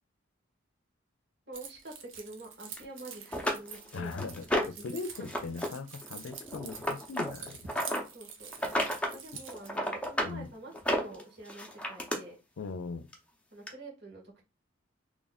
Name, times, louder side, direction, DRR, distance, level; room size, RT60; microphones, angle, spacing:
voice 1, 1.5-4.1 4.5-5.0 7.9-8.5 9.1-12.4 13.5-14.4, right 2 dB, 60° right, 1.6 m, -47 dB
Keys jangling, 1.5-9.7, right 7 dB, 85° right, 0.8 m, -47 dB
sound 1, 2.8-2.9 3.3-4.9 5.2-5.7 5.9-8.0 8.5-9.2 9.5-10.3 10.7-12.2 13.1-13.2 13.7-13.8, equal, 5° left, 0.7 m, -31 dB
voice 2, 3.9-7.6 10.2-10.5 12.6-13.1, left 4 dB, 85° left, 0.4 m, -39 dB
3.1 x 2.5 x 4.0 m
head